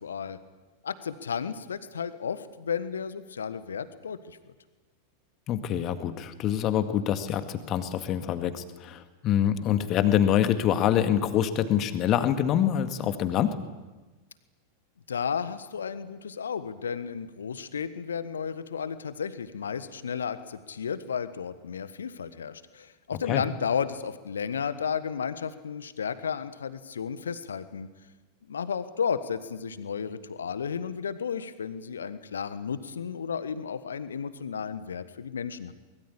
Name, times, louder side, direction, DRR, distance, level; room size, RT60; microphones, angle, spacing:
voice 1, 0.0-0.4 0.8-4.5 15.1-27.9 28.5-35.7, left 7 dB, 70° left, 13 dB, 1.5 m, -33 dB
voice 2, 5.5-13.6 23.3-23.4, left 10 dB, 35° left, 9 dB, 2.0 m, -25 dB
24.0 x 21.5 x 8.7 m, 1.2 s
figure-of-eight pair, 90°, 0 cm